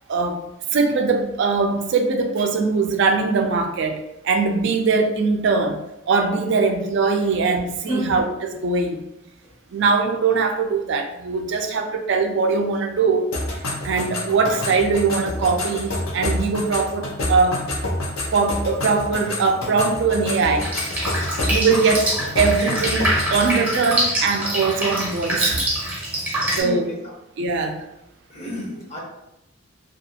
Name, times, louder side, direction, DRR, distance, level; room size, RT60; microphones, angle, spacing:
voice 1, 0.1-0.4 0.7-5.8 6.1-9.0 9.7-13.3 13.8-17.6 18.3-20.7 21.5-25.7 26.6-26.9 27.4-27.8, right 4 dB, 60° right, 4 dB, 0.4 m, -21 dB
sound 1, 13.3-23.6, left 1 dB, 90° left, 0.7 m, -28 dB
Drip, 20.6-26.6, right 1 dB, 10° right, 0.6 m, -24 dB
voice 2, 26.4-27.0 28.3-29.0, equal, 30° left, -2 dB, 0.6 m, -30 dB
2.4 x 2.3 x 2.7 m, 0.88 s
head